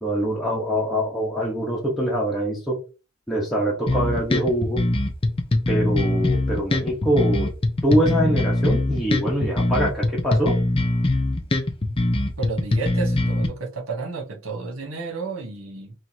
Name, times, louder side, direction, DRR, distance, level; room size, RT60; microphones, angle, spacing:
voice 1, 0.0-2.8 3.3-4.8 5.7-7.5 7.8-10.6, equal, ahead, 1.0 m, -24 dB
sound 1, 3.9-13.5, left 1 dB, 25° left, 0.6 m, -22 dB
voice 2, 12.4-15.9, right 4 dB, 80° right, 1.0 m, -31 dB
4.4 x 3.2 x 2.7 m
head